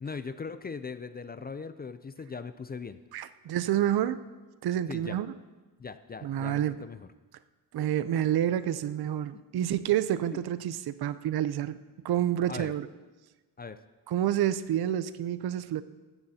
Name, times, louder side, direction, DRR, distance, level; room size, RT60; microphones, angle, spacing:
voice 1, 0.0-3.0 4.9-5.2 5.8-7.1 12.5-12.7 13.6-13.8, left 5 dB, 25° left, 12 dB, 0.3 m, -39 dB
voice 2, 3.1-4.3 4.6-5.3 6.2-6.8 7.7-11.8 12.0-12.9 14.1-15.8, right 11 dB, 60° right, 14 dB, 0.6 m, -28 dB
18.5 x 14.0 x 2.8 m, 1.3 s
wide cardioid pair, 140°, 42 cm